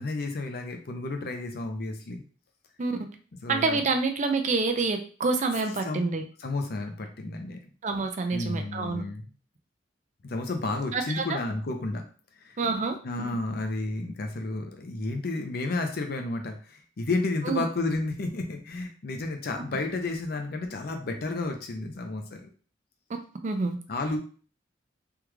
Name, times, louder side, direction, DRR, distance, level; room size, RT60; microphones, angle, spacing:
voice 1, 0.0-2.2 3.4-3.8 5.8-7.6 8.3-9.3 10.2-12.0 12.4-12.6 13.0-22.5 23.9-24.2, left 2 dB, 55° left, 4 dB, 0.5 m, -32 dB
voice 2, 3.5-6.2 7.8-9.0 10.9-11.4 12.6-13.4 17.4-17.7 23.4-23.8, right 3 dB, 40° right, 6 dB, 0.4 m, -27 dB
3.5 x 2.3 x 3.1 m, 0.40 s
head